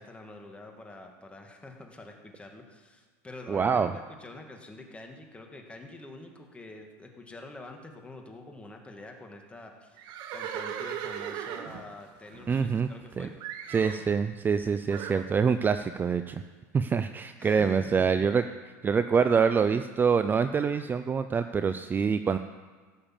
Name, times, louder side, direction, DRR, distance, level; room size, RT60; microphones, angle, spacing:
voice 1, 0.0-13.4 17.4-18.3, left 2 dB, 15° left, 3 dB, 2.1 m, -46 dB
voice 2, 3.5-3.9 12.5-12.9 13.2-13.3 13.7-16.4 16.7-18.4 18.8-22.4, right 6 dB, 20° right, 10 dB, 0.5 m, -25 dB
Livestock farm animals working animals, 10.0-13.1 13.4-14.1 14.9-15.3, right 9 dB, 55° right, 1.2 m, -38 dB
17.0 x 6.7 x 7.4 m, 1.5 s
supercardioid pair, 105°, 9 cm